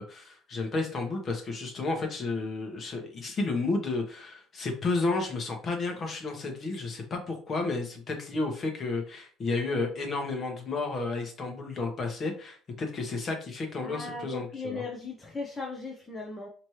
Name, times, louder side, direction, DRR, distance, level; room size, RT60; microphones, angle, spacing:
voice 1, 0.0-14.8, left 3 dB, 40° left, 3 dB, 1.2 m, -32 dB
voice 2, 13.8-16.5, left 3 dB, 15° left, -1 dB, 0.8 m, -37 dB
4.3 x 3.0 x 3.1 m, 0.43 s
cardioid pair, 115°, 0 cm